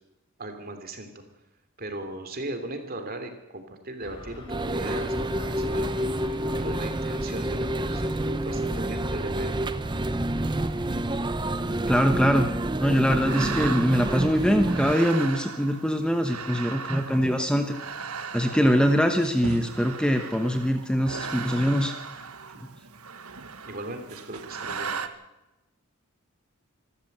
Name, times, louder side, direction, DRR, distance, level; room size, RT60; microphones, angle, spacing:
voice 1, 0.4-1.2 1.8-6.0 6.6-9.6 23.6-25.0, right 1 dB, 40° right, 7 dB, 3.0 m, -38 dB
sound 1, 4.0-11.3, equal, 20° left, 3.6 m, -42 dB
sound 2, 4.5-14.9, right 1 dB, 20° right, 0.7 m, -28 dB
voice 2, 11.9-12.5 12.8-17.8 18.3-21.9, equal, 5° left, 5 dB, 1.1 m, -23 dB
sound 3, 13.1-25.1, right 5 dB, 85° right, 1.4 m, -37 dB
25.5 x 13.5 x 8.1 m, 1.0 s
head